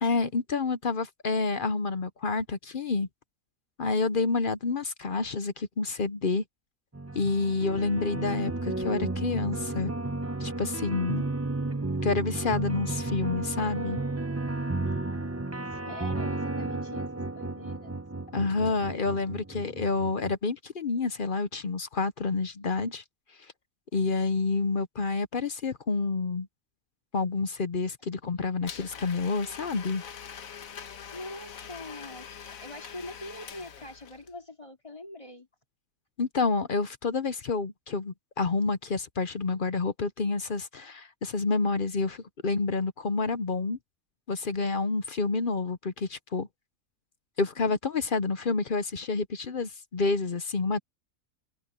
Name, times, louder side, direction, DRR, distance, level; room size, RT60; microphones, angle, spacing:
voice 1, 0.0-3.1 3.8-6.4 7.1-9.9 10.4-11.2 12.0-14.0 18.3-23.0 23.9-26.5 27.1-30.0 36.2-43.8 44.3-46.5 47.4-50.8, left 3 dB, 45° left, 0.9 m, -28 dB
sound 1, 6.9-20.3, right 2 dB, 15° right, 0.7 m, -33 dB
voice 2, 15.7-17.9 31.1-32.3 32.6-35.5, left 1 dB, 20° left, 2.8 m, -44 dB
Domestic sounds home sounds, 28.7-34.3, left 7 dB, 80° left, 1.5 m, -44 dB
omnidirectional pair, 1.4 m